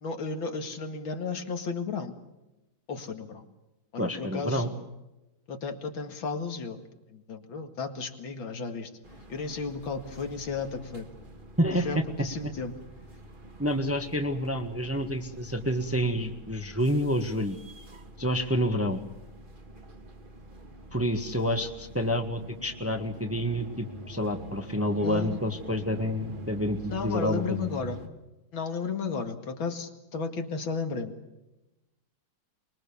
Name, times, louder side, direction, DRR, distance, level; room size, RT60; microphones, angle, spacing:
voice 1, 0.0-2.2 2.9-3.4 3.9-4.7 5.5-6.8 7.1-8.9 9.3-11.1 11.7-12.7 21.5-21.6 25.0-25.4 26.9-28.0 28.5-31.2, left 4 dB, 75° left, 6 dB, 2.7 m, -33 dB
voice 2, 4.0-4.7 11.6-12.0 13.6-17.6 18.2-19.0 20.9-27.6, equal, 10° right, 6 dB, 1.3 m, -28 dB
sound 1, 9.0-28.1, right 1 dB, 25° right, 1.8 m, -45 dB
24.5 x 22.0 x 7.1 m, 0.98 s
omnidirectional pair, 2.2 m